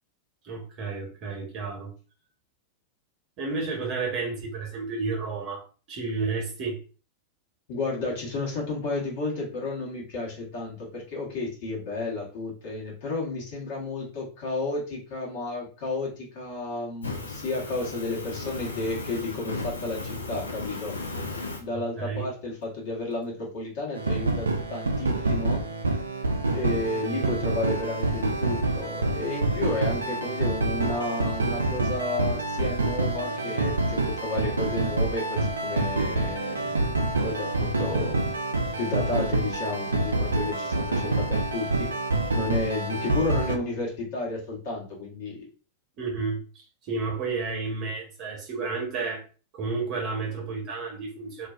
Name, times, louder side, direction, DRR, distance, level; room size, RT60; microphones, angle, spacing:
voice 1, 0.4-1.9 3.4-6.8 21.7-22.3 27.1-27.3 46.0-46.4 46.8-49.2 49.5-51.5, right 4 dB, 40° right, 0 dB, 1.0 m, -31 dB
voice 2, 7.7-20.9 21.6-25.6 26.5-38.3 38.8-41.9 42.3-45.5, left 2 dB, 50° left, -3 dB, 1.0 m, -32 dB
Fire, 17.0-21.6, left 3 dB, 80° left, 0.5 m, -35 dB
sound 1, 23.9-43.6, right 2 dB, 75° right, 0.4 m, -27 dB
2.5 x 2.2 x 2.3 m, 0.36 s
figure-of-eight pair, 90°, 0 cm